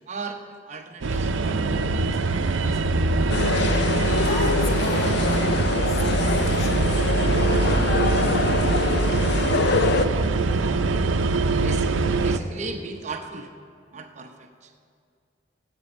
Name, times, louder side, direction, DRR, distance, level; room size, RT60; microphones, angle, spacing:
voice 1, 0.1-0.4 0.6-1.8 10.0-10.9 11.6-13.5 13.9-14.7, right 3 dB, 35° right, 4 dB, 0.8 m, -37 dB
sound 1, 1.0-12.4, right 3 dB, 80° right, 0.6 m, -23 dB
voice 2, 1.1-2.0 4.2-7.3, left 2 dB, 35° left, 1 dB, 1.6 m, -38 dB
sound 2, 2.7-2.8 3.4-5.5 5.8-7.4 7.7-7.8 8.3-8.4 8.7-10.1, equal, 5° left, 0.7 m, -39 dB
sound 3, 3.3-10.1, left 4 dB, 60° left, 0.5 m, -25 dB
16.5 x 8.2 x 6.7 m, 2.3 s
head